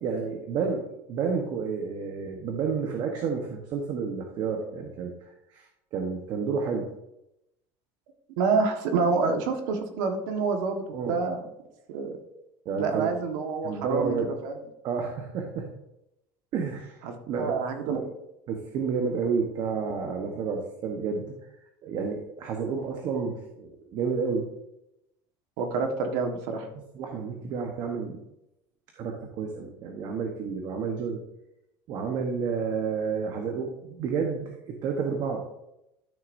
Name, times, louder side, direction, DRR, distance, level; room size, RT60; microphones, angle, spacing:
voice 1, 0.0-5.7 5.9-6.9 10.9-11.2 12.6-13.1 13.6-14.3 14.8-15.7 16.5-17.0 17.3-17.5 17.8-18.1 18.5-21.3 21.8-24.5 26.9-28.2 29.0-31.2 31.9-35.5, right 5 dB, 45° right, 2 dB, 1.1 m, -30 dB
voice 2, 8.4-11.4 11.9-12.2 12.8-14.1 14.4-14.5 17.0-18.0 25.6-26.7, right 4 dB, 80° right, 4 dB, 1.5 m, -27 dB
12.0 x 6.7 x 2.6 m, 0.86 s
cardioid pair, 160°, 10 cm